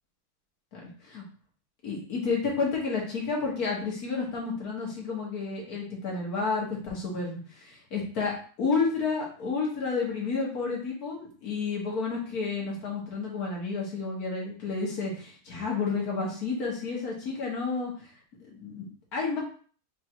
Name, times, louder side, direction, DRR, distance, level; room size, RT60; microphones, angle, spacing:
voice 1, 0.7-1.2 1.8-17.9 18.5-19.4, left 4 dB, 75° left, -2 dB, 1.9 m, -31 dB
4.5 x 2.5 x 4.4 m, 0.42 s
omnidirectional pair, 1.6 m